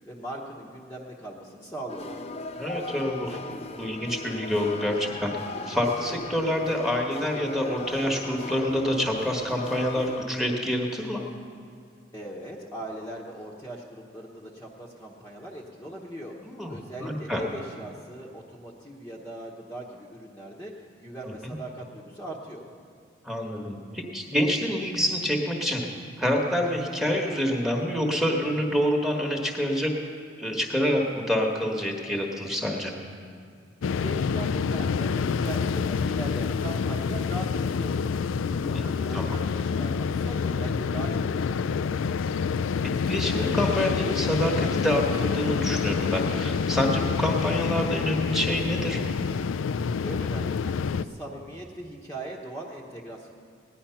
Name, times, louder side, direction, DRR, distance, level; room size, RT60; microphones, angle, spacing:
voice 1, 0.1-2.2 12.1-16.4 16.7-22.7 34.0-38.2 38.6-41.8 50.0-53.3, right 1 dB, 15° left, -4 dB, 1.0 m, -40 dB
sound 1, 1.9-10.3, left 3 dB, 30° left, 0.6 m, -38 dB
voice 2, 2.6-5.3 5.7-11.2 16.4-17.4 21.4-21.5 23.2-25.8 26.2-29.9 30.4-32.9 38.7-38.8 39.1-39.4 43.1-49.0, equal, ahead, 1 dB, 1.3 m, -27 dB
sound 2, 33.8-51.0, left 5 dB, 85° left, 0.4 m, -27 dB
17.5 x 10.5 x 5.7 m, 2.2 s
head